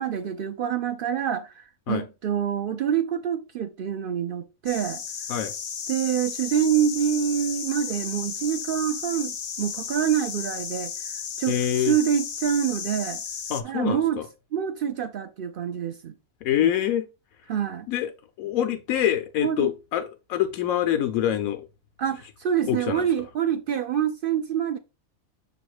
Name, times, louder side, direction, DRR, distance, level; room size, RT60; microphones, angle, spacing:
voice 1, 0.0-5.0 5.9-13.2 13.6-14.2 14.5-16.1 17.5-17.9 19.4-19.7 22.0-24.8, right 9 dB, 75° right, 0.5 m, -26 dB
sound 1, 4.7-13.6, left 7 dB, 60° left, 0.4 m, -34 dB
voice 2, 11.5-11.9 13.5-14.3 16.4-17.1 17.9-18.1 18.4-21.7 22.7-23.1, left 11 dB, 80° left, 1.1 m, -25 dB
6.9 x 2.9 x 4.6 m
omnidirectional pair, 1.4 m